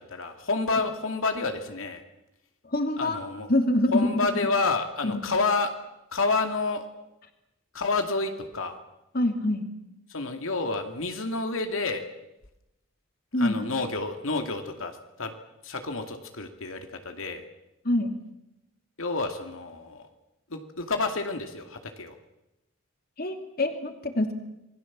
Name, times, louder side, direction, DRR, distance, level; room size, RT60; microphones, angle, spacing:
voice 1, 0.1-2.0 3.0-3.5 3.9-5.7 6.1-6.8 7.7-8.8 10.1-12.0 13.4-15.3 15.6-17.4 19.0-20.1 20.5-22.1, left 3 dB, 80° left, 5 dB, 2.4 m, -29 dB
voice 2, 2.7-3.2 3.5-4.1 5.0-5.2 9.1-9.6 13.3-13.6 17.8-18.1 23.2-24.3, left 1 dB, 45° left, 6 dB, 2.6 m, -25 dB
27.5 x 20.5 x 7.5 m, 0.91 s
head